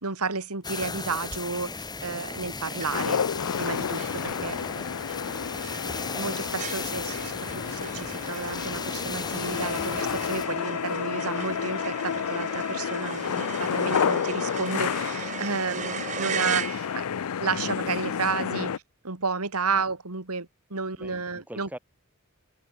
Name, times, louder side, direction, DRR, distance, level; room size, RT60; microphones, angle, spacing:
voice 1, 0.0-3.2 3.6-4.8 6.1-17.0 17.4-21.7, right 4 dB, 85° right, 2.6 m, -32 dB
sound 1, 0.6-10.5, left 4 dB, 20° left, 2.1 m, -36 dB
sound 2, 2.8-3.2 3.6-3.7 4.0-17.2, right 7 dB, 35° right, 0.7 m, -38 dB
sound 3, 2.9-18.8, left 7 dB, 85° left, 0.5 m, -30 dB
voice 2, 21.0-21.8, right 1 dB, 5° right, 2.8 m, -45 dB
head